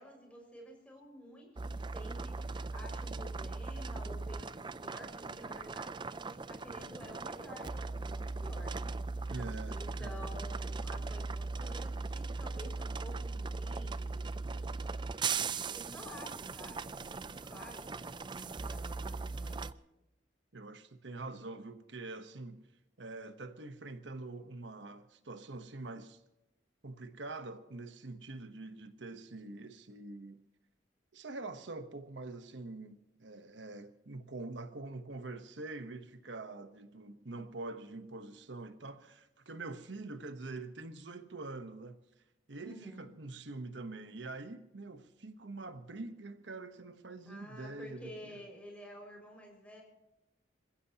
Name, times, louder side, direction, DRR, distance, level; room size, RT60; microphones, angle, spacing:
voice 1, 0.0-8.9 9.2-9.3 9.7-19.7 42.6-43.1 47.3-49.8, equal, 5° left, 5.6 m, -51 dB
sound 1, 1.6-19.7, right 4 dB, 25° right, 0.4 m, -39 dB
voice 2, 9.3-10.2 20.5-22.6 23.0-26.2 26.8-30.4 31.1-42.0 42.5-48.4, right 2 dB, 80° right, 1.1 m, -45 dB
27.0 x 15.5 x 2.9 m
head